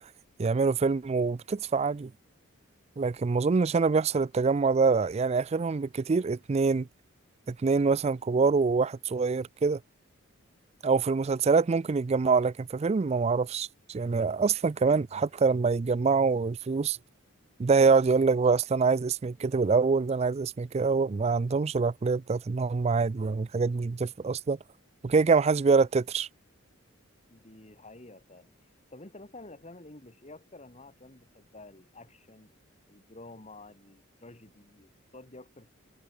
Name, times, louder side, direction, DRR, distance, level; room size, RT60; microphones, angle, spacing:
voice 1, 0.4-2.1 3.0-6.9 7.5-9.8 10.8-17.0 17.6-24.6 25.0-26.3, right 4 dB, 30° right, 0.3 m, -25 dB
voice 2, 27.3-32.5 32.9-35.7, left 2 dB, 30° left, 2.4 m, -50 dB
head